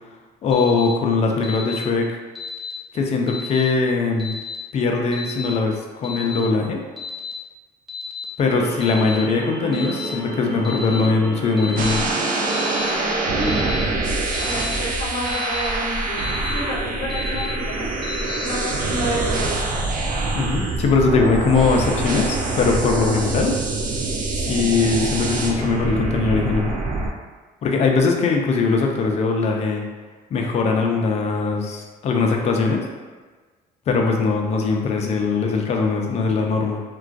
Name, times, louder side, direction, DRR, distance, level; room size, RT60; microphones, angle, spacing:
voice 1, 0.4-2.2 2.9-4.4 4.7-6.8 8.4-12.0 20.3-23.5 24.4-26.7 27.6-29.9 30.3-32.8 33.9-36.8, left 4 dB, 40° left, 2 dB, 0.4 m, -21 dB
Alarm, 0.5-0.9 1.4-1.8 2.4-2.7 3.3-3.6 4.2-4.6 5.1-5.5 6.0-6.4 7.0-7.3 7.9-8.2 8.8-9.2 9.7-10.1 10.6-11.0 11.6-11.9 12.5-12.9 13.4-13.8 14.3-14.7 15.3-15.6 16.2-16.5 17.1-17.5 18.0-18.4, left 5 dB, ahead, 0.6 m, -33 dB
sound 1, 8.4-13.8, right 3 dB, 85° right, 1.0 m, -31 dB
sound 2, 11.8-27.1, right 3 dB, 55° right, 0.4 m, -25 dB
voice 2, 12.7-13.8 14.3-19.8 23.0-23.3, equal, 65° left, -5 dB, 0.9 m, -30 dB
2.2 x 2.2 x 2.5 m, 1.4 s
cardioid pair, 110°, 17 cm